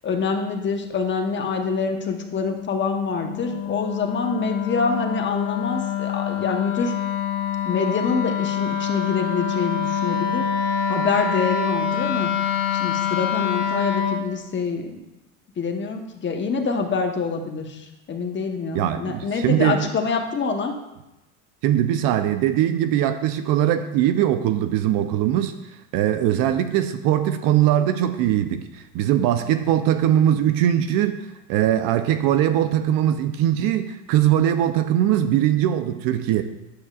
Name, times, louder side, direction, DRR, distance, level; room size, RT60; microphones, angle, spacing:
voice 1, 0.0-6.9 7.6-10.5 10.9-12.3 12.7-15.0 15.6-20.7, left 5 dB, 30° left, 4 dB, 1.1 m, -26 dB
Wind instrument woodwind instrument, 1.3-14.3, left 8 dB, 75° left, 1.8 m, -26 dB
voice 2, 18.7-19.9 21.6-25.5 25.9-28.6 28.9-31.2 31.5-36.4, right 11 dB, 60° right, 10 dB, 0.7 m, -21 dB
9.6 x 8.0 x 2.4 m, 0.95 s
supercardioid pair, 95°, 38 cm